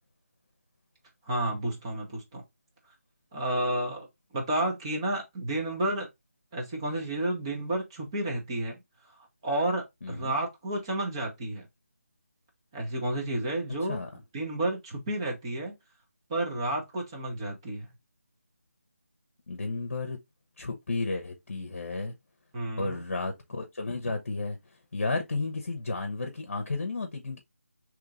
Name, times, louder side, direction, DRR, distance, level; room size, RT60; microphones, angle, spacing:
voice 1, 1.3-2.4 3.3-4.1 4.3-6.1 6.5-8.8 9.4-11.7 12.7-14.0 14.3-15.7 16.3-17.9 22.5-23.0, right 1 dB, 20° right, 1.1 m, -31 dB
voice 2, 10.0-10.4 13.9-14.2 19.5-20.2 20.6-22.1 22.8-24.6 24.9-27.4, left 3 dB, 50° left, 0.9 m, -33 dB
3.8 x 3.1 x 3.7 m
figure-of-eight pair, 160°, 8 cm